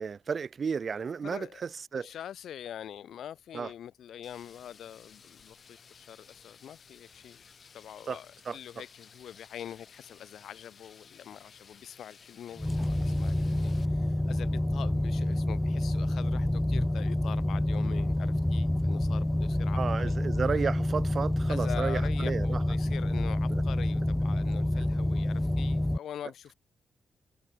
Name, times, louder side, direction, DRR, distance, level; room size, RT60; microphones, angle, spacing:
voice 1, 0.0-2.1 3.5-3.7 8.1-8.2 8.4-8.6 19.7-22.6, right 6 dB, 45° right, 1.2 m, -33 dB
voice 2, 0.9-1.6 1.9-7.4 7.7-20.2 21.5-26.5, left 10 dB, 85° left, 2.4 m, -44 dB
sound 1, 4.2-13.9, left 6 dB, 50° left, 4.2 m, -56 dB
sound 2, 12.6-26.0, left 1 dB, 10° left, 0.6 m, -28 dB
cardioid pair, 110°, 0 cm